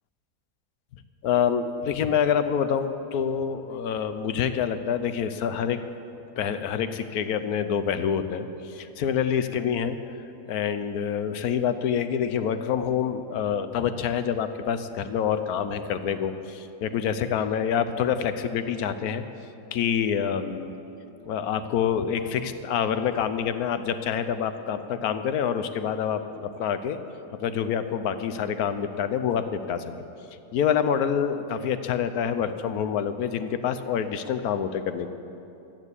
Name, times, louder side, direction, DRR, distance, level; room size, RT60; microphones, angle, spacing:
voice 1, 1.2-5.8 6.4-10.0 10.5-19.2 19.7-20.7 21.3-27.0 27.3-29.9 30.5-35.1, left 8 dB, 70° left, 10 dB, 1.2 m, -27 dB
13.5 x 9.0 x 8.1 m, 2.8 s
omnidirectional pair, 1.7 m